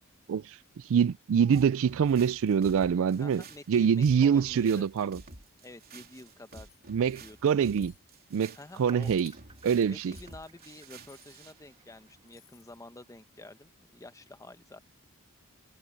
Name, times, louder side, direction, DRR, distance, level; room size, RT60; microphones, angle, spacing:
voice 1, 0.9-5.2 6.9-7.9 8.3-9.3 9.6-10.1, right 7 dB, 65° right, 0.4 m, -25 dB
sound 1, 1.5-11.6, right 3 dB, 45° right, 3.4 m, -50 dB
voice 2, 3.2-4.9 5.6-6.7 7.1-7.4 8.5-9.1 9.8-14.8, left 2 dB, 15° left, 0.9 m, -49 dB
sound 2, 6.7-7.2 7.7-8.0 9.0-9.5 10.2-10.3 11.1-11.5 12.2-12.8, left 11 dB, 45° left, 3.2 m, -59 dB
sound 3, 8.5-12.5, right 4 dB, 25° right, 2.2 m, -57 dB
head